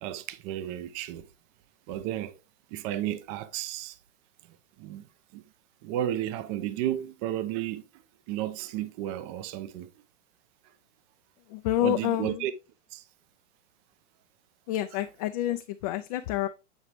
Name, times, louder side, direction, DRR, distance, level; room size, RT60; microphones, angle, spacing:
voice 1, 0.0-1.2 1.9-2.3 2.7-4.0 4.8-5.0 5.3-5.4 5.8-7.8 8.3-9.9 11.8-12.5 12.9-13.0, right 12 dB, 30° right, 0.5 m, -32 dB
voice 2, 11.5-12.5 14.7-16.5, left 13 dB, 30° left, 0.4 m, -28 dB
8.2 x 4.8 x 3.2 m
figure-of-eight pair, 105°, 37 cm